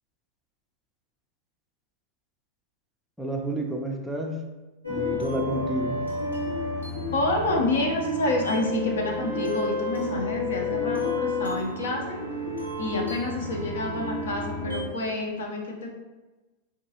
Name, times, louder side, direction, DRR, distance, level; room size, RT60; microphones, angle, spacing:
voice 1, 3.2-4.4 4.9-6.0, equal, 5° right, 0 dB, 0.4 m, -30 dB
sound 1, 4.8-14.9, left 2 dB, 85° left, 0.9 m, -31 dB
voice 2, 7.1-12.2 12.8-16.0, left 2 dB, 60° left, 1 dB, 0.6 m, -28 dB
4.5 x 2.4 x 2.8 m, 1.2 s
figure-of-eight pair, 90°, 0 cm